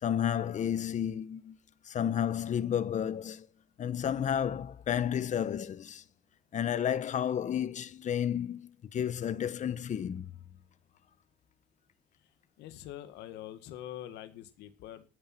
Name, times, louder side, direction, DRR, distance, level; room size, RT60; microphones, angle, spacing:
voice 1, 0.0-1.6 1.9-3.5 3.8-6.0 6.5-10.2, left 9 dB, 45° left, 1.0 m, -31 dB
voice 2, 12.6-15.1, left 12 dB, 85° left, 1.9 m, -44 dB
14.0 x 9.5 x 6.1 m
cardioid pair, 110°, 17 cm